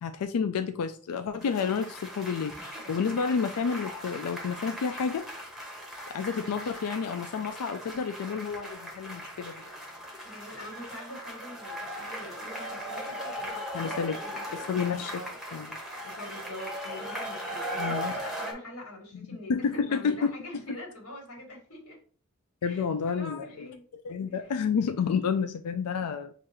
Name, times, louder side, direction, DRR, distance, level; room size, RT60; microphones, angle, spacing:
voice 1, 0.0-5.2 6.1-9.5 13.7-14.2 14.5-15.2 15.5-15.8 17.8-18.1 19.5-20.3 22.6-23.7 24.0-26.3, left 6 dB, 85° left, 0.4 m, -30 dB
voice 2, 0.5-0.9 6.3-6.6 10.2-14.7 15.1-15.4 16.0-22.0 22.6-23.8 24.3-24.5, left 1 dB, 70° left, 1.7 m, -45 dB
sound 1, 1.4-18.5, equal, ahead, 0.9 m, -38 dB
6.3 x 2.5 x 3.0 m
head